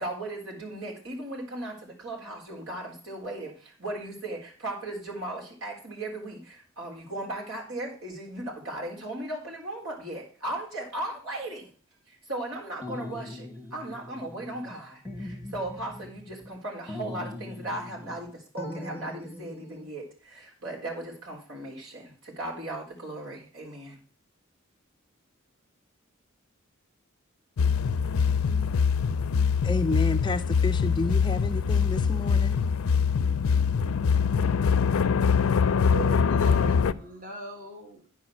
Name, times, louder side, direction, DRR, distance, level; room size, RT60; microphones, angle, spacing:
voice 1, 0.0-11.7 12.1-24.0, right 1 dB, 80° right, 3.9 m, -37 dB
sound 1, 12.8-14.8 15.0-16.5 16.9-18.2 18.6-19.9, left 1 dB, 10° right, 1.3 m, -40 dB
sound 2, 27.6-36.9, left 6 dB, 90° left, 0.5 m, -23 dB
voice 2, 29.6-32.6, left 2 dB, 20° left, 0.4 m, -30 dB
voice 3, 35.8-38.1, right 2 dB, 40° right, 1.3 m, -39 dB
11.0 x 4.9 x 6.0 m
head